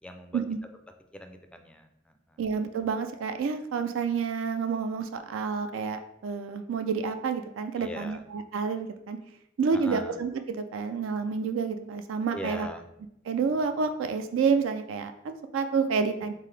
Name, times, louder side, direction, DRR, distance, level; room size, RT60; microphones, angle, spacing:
voice 1, 0.0-0.4 1.1-2.4 7.8-8.2 9.7-10.2 12.3-12.9, equal, 5° left, 6 dB, 0.3 m, -41 dB
voice 2, 2.4-9.2 9.6-10.4 10.7-12.7 13.3-16.3, right 5 dB, 75° right, 8 dB, 0.3 m, -29 dB
3.7 x 3.7 x 3.3 m, 0.81 s
head